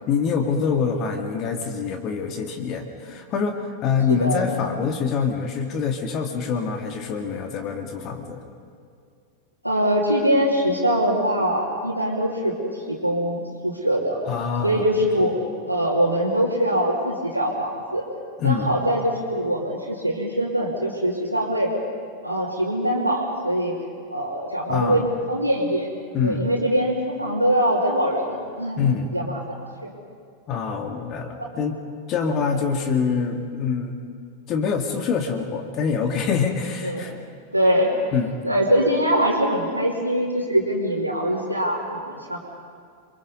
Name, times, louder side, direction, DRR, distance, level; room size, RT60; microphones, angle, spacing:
voice 1, 0.1-8.4 14.3-14.9 18.4-18.7 24.7-25.1 26.1-26.5 28.8-29.1 30.5-31.8 32.1-34.0 34.5-37.2 38.1-38.4, left 6 dB, 35° left, 4 dB, 2.1 m, -25 dB
voice 2, 4.1-4.4 9.6-14.2 14.6-15.3 15.7-18.0 18.4-21.7 22.2-23.7 24.1-25.9 26.2-29.3 29.8-29.9 31.4-31.5 36.8-37.0 37.5-37.9 38.4-42.4, equal, 90° right, -7 dB, 2.8 m, -23 dB
29.0 x 23.0 x 5.5 m, 2.2 s
figure-of-eight pair, 90°, 0 cm